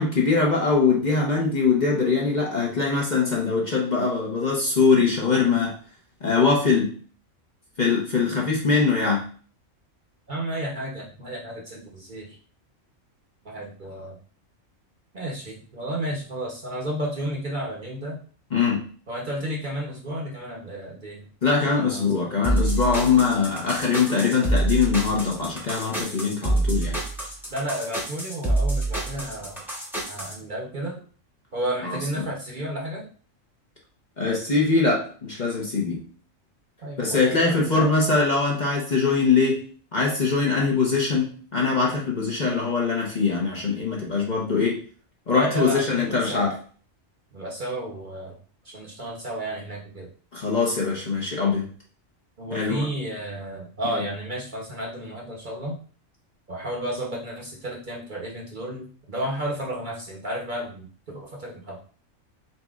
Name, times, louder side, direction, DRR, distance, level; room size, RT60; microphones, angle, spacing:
voice 1, 0.0-5.7 6.2-6.9 7.8-9.2 18.5-18.8 21.4-27.0 31.8-32.3 34.2-36.0 37.0-39.6 39.9-44.8 45.3-46.5 50.3-51.7 52.5-52.8, left 4 dB, 40° left, -3 dB, 0.9 m, -22 dB
voice 2, 10.3-12.4 13.4-14.2 15.1-18.2 19.1-21.3 21.6-22.5 27.5-29.6 30.1-31.0 31.5-33.1 36.8-38.1 45.3-46.5 47.3-48.4 48.6-50.1 52.4-55.8 56.5-61.8, right 1 dB, 45° right, -2 dB, 0.9 m, -32 dB
sound 1, 22.4-30.3, right 2 dB, ahead, 0.9 m, -26 dB
4.2 x 4.1 x 2.4 m, 0.42 s
omnidirectional pair, 1.4 m